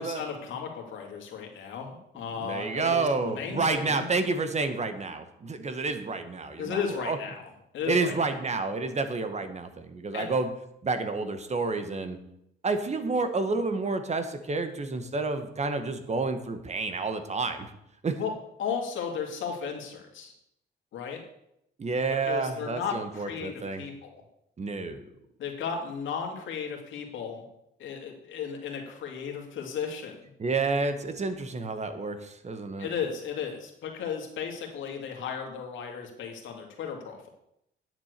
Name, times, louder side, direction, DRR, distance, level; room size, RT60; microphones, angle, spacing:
voice 1, 0.0-4.1 6.6-8.2 10.1-10.3 18.2-18.3 18.6-20.3 20.9-21.2 22.1-24.2 25.4-27.4 27.8-30.1 32.8-37.3, left 6 dB, 75° left, 2 dB, 2.5 m, -35 dB
voice 2, 2.4-7.2 7.9-10.5 10.8-12.2 12.6-17.7 18.0-18.2 21.8-23.8 24.6-25.0 30.4-32.9, right 3 dB, 35° right, 9 dB, 1.4 m, -29 dB
9.9 x 7.5 x 6.7 m, 0.79 s
cardioid pair, 90°, 20 cm